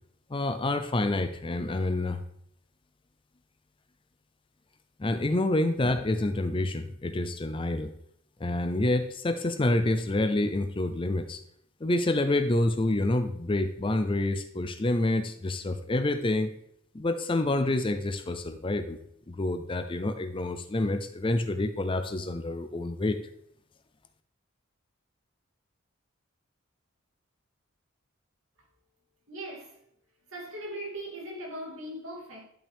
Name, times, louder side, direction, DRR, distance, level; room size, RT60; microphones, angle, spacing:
voice 1, 0.3-2.2 5.0-7.9 8.4-11.4 11.8-16.5 16.9-19.0 19.3-23.2, left 2 dB, 25° left, 0.5 m, -28 dB
voice 2, 29.3-29.8 30.3-32.4, right 1 dB, 70° right, 2.8 m, -39 dB
11.0 x 5.9 x 3.5 m
head